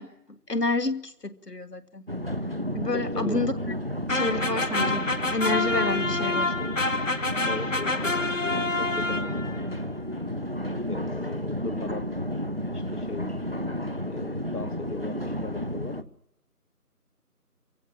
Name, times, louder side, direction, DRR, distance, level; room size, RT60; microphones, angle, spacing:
voice 1, 0.0-2.0 2.7-3.5 4.1-6.5, left 3 dB, 85° left, 1.9 m, -29 dB
sound 1, 2.1-16.0, equal, 40° right, 0.8 m, -32 dB
voice 2, 2.9-3.4 7.5-9.4 10.9-12.1 12.7-13.3 14.0-16.0, left 3 dB, 70° left, 1.1 m, -38 dB
sound 2, 4.1-9.6, left 2 dB, 55° left, 0.8 m, -28 dB
23.0 x 16.0 x 7.5 m
figure-of-eight pair, 170°, 47 cm